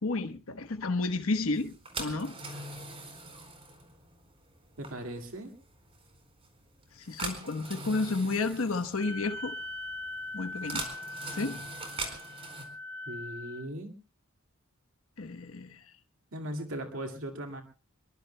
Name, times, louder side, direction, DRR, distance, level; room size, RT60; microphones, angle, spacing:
voice 1, 0.0-2.3 6.9-9.5 10.3-10.9 11.3-11.6 15.2-15.8, left 3 dB, 75° left, 1.1 m, -31 dB
sound 1, 1.5-12.6, right 2 dB, 25° right, 4.3 m, -42 dB
voice 2, 4.8-5.5 13.1-13.9 16.3-17.6, right 1 dB, 70° right, 2.1 m, -38 dB
Wind instrument woodwind instrument, 8.9-13.6, left 2 dB, 50° right, 2.5 m, -41 dB
26.0 x 22.5 x 2.2 m
head